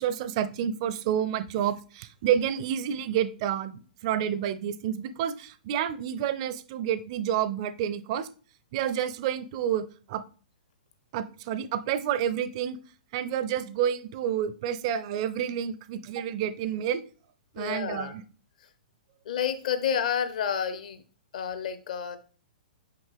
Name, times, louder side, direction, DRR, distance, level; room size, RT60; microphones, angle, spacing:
voice 1, 0.0-8.3 8.7-10.2 11.1-12.8 13.1-17.0 17.5-18.2, right 9 dB, 40° right, 13 dB, 0.5 m, -29 dB
voice 2, 17.6-18.1 19.3-21.0 21.3-22.2, left 8 dB, 55° left, 11 dB, 0.8 m, -29 dB
5.8 x 5.3 x 3.4 m, 0.40 s
figure-of-eight pair, 110°, 5 cm